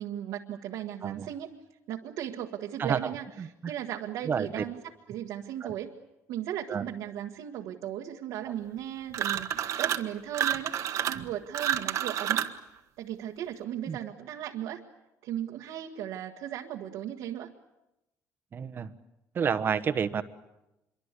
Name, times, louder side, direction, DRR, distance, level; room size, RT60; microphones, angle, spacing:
voice 1, 0.0-1.5 1.9-5.9 6.3-12.4 13.0-14.8 15.2-17.5, right 11 dB, 80° right, -1 dB, 1.6 m, -36 dB
voice 2, 3.4-3.7 4.2-4.6 5.6-5.7 6.7-6.8 13.9-14.0 18.5-18.9 19.3-20.2, right 7 dB, 35° right, 12 dB, 1.2 m, -29 dB
sound 1, 9.1-10.1 10.3-12.6, right 10 dB, 60° right, 1.4 m, -29 dB
26.0 x 23.5 x 8.3 m, 0.94 s
cardioid pair, 135°, 6 cm